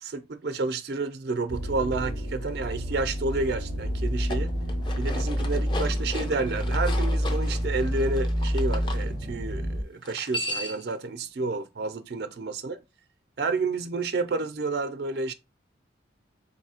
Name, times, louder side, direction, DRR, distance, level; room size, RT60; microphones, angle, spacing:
voice 1, 0.0-4.5 5.0-12.8 13.4-15.3, right 3 dB, 55° right, 0.4 m, -30 dB
sound 1, 1.5-9.8, equal, 80° left, 2.0 m, -28 dB
sound 2, 4.1-9.0 10.0-10.9, left 1 dB, 25° left, 0.5 m, -37 dB
4.1 x 2.7 x 2.7 m
head